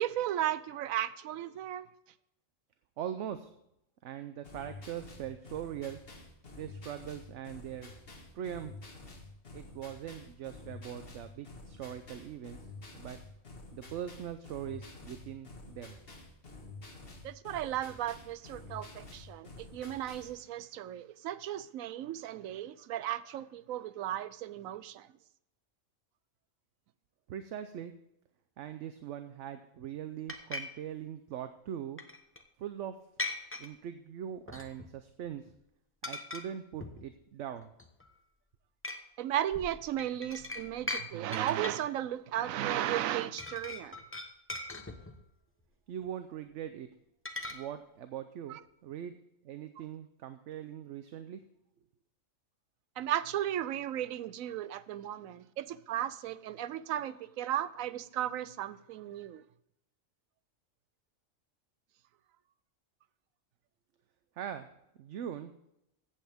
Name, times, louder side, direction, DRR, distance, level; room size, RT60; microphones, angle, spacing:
voice 1, 0.0-1.9 17.2-25.1 39.2-44.0 48.5-48.6 53.0-59.4, right 11 dB, 85° right, 1.0 m, -35 dB
voice 2, 3.0-3.5 4.0-6.0 6.6-8.0 8.3-8.9 9.5-12.7 12.9-13.2 13.7-16.0 27.3-27.9 28.6-32.0 32.6-32.9 33.6-35.5 36.0-37.7 45.9-46.9 47.5-49.2 49.4-51.4 64.4-64.7 65.0-65.5, right 10 dB, 70° right, 0.9 m, -41 dB
sound 1, 4.4-20.4, left 2 dB, 45° left, 1.8 m, -49 dB
sound 2, 30.3-30.6 32.0-32.4 33.2-33.7 34.5-35.0 35.3-35.5 36.0-36.5 36.8-37.1 37.6-38.1 38.8-39.0 39.5-41.0 41.3-41.8 42.9-43.1 43.4-45.3 47.3-47.6, left 2 dB, 10° left, 0.8 m, -39 dB
15.0 x 8.4 x 3.5 m
omnidirectional pair, 1.4 m